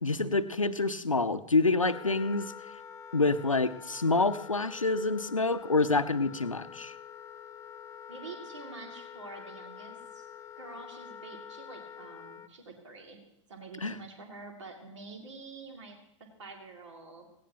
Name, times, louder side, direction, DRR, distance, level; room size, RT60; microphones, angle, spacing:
voice 1, 0.0-2.5 3.1-6.9 13.8-14.0, left 3 dB, 85° left, 12 dB, 0.7 m, -27 dB
Wind instrument woodwind instrument, 1.8-12.5, left 8 dB, 15° left, 0.5 m, -47 dB
voice 2, 8.1-10.3 10.6-13.2 13.5-17.3, right 3 dB, 65° right, 3 dB, 2.3 m, -47 dB
18.0 x 17.0 x 2.9 m, 0.80 s
figure-of-eight pair, 100°, 16 cm